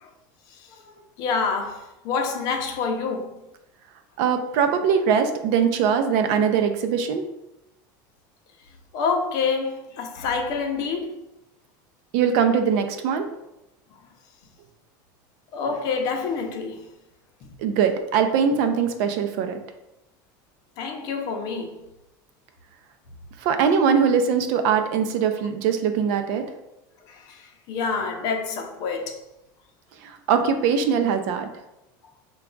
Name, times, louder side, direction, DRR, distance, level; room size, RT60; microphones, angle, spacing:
voice 1, 0.7-3.4 8.9-11.2 15.5-16.9 20.8-21.7 27.1-29.2, left 5 dB, 40° left, 0.6 m, -27 dB
voice 2, 4.2-7.3 12.1-13.3 17.6-19.6 23.4-26.4 30.0-31.5, right 7 dB, 55° right, 0.5 m, -21 dB
5.8 x 2.3 x 3.8 m
cardioid pair, 175°, 10 cm